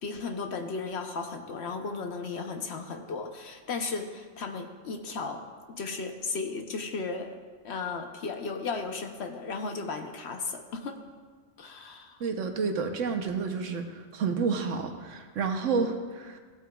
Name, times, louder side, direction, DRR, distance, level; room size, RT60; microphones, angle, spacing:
voice 1, 0.0-5.4 5.7-7.4 7.6-11.0 11.6-12.3 15.7-15.9, left 4 dB, 60° left, 4 dB, 0.9 m, -35 dB
voice 2, 12.2-16.4, right 5 dB, 70° right, 5 dB, 1.1 m, -30 dB
16.0 x 8.4 x 2.3 m, 1.6 s
omnidirectional pair, 1.4 m